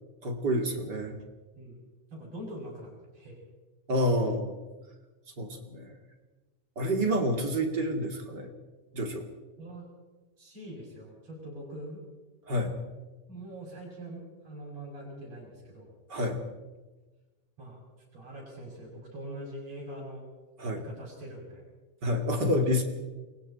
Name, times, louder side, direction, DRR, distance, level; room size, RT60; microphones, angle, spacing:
voice 1, 0.2-1.2 3.9-4.6 5.4-6.0 6.8-8.5 8.9-9.3 12.5-12.7 16.1-16.4 20.6-20.8 22.0-22.8, equal, 35° right, 3 dB, 2.8 m, -28 dB
voice 2, 2.1-3.4 9.6-9.9 10.4-12.0 13.3-15.9 17.6-17.8 18.1-20.2 20.7-21.6, right 1 dB, 50° right, -5 dB, 7.6 m, -43 dB
28.5 x 23.0 x 4.3 m, 1.2 s
omnidirectional pair, 3.7 m